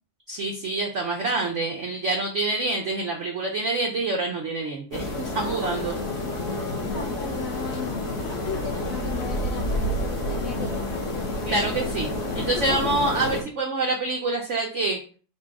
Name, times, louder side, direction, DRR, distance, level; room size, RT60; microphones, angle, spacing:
voice 1, 0.3-5.9 11.4-12.1 12.3-15.0, right 2 dB, 80° right, 1 dB, 0.6 m, -26 dB
sound 1, 4.9-13.4, left 1 dB, 50° left, 1.1 m, -29 dB
voice 2, 5.3-11.0 12.4-12.9, left 6 dB, 70° left, 1 dB, 0.8 m, -37 dB
4.3 x 2.2 x 4.6 m, 0.40 s
omnidirectional pair, 2.0 m